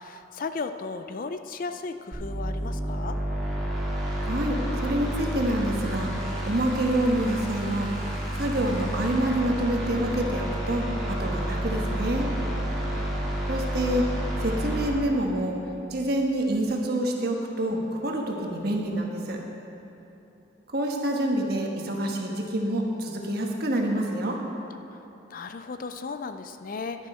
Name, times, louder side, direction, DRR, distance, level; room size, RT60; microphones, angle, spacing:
voice 1, 0.0-3.2 12.7-13.3 24.9-25.0 25.3-27.1, left 4 dB, 45° left, 9 dB, 0.4 m, -36 dB
sound 1, 2.1-14.9, right 1 dB, ahead, 2.2 m, -30 dB
voice 2, 4.2-7.9 8.3-12.3 13.5-15.6 15.9-19.4 20.7-24.4, right 1 dB, 55° right, 1 dB, 1.2 m, -27 dB
11.5 x 9.9 x 4.4 m, 3.0 s
head